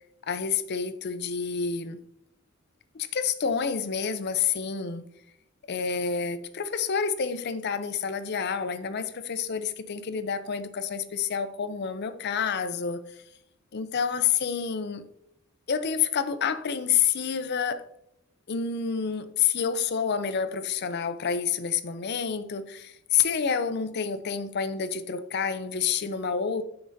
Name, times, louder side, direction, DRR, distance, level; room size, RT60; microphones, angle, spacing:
voice 1, 0.3-2.0 2.9-5.1 5.7-13.2 13.7-15.0 15.7-17.9 18.5-26.6, left 6 dB, 55° left, 0.5 m, -28 dB
8.4 x 6.0 x 2.6 m
head